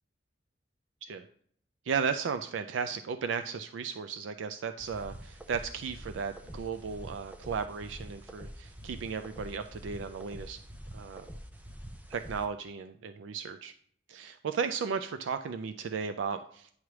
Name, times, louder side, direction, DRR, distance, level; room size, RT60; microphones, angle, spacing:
voice 1, 1.9-10.6 10.9-11.3 12.1-13.7 14.1-16.7, right 6 dB, 80° right, 9 dB, 0.4 m, -35 dB
sound 1, 4.8-12.5, equal, 10° right, 0.5 m, -46 dB
9.5 x 3.2 x 6.0 m, 0.62 s
head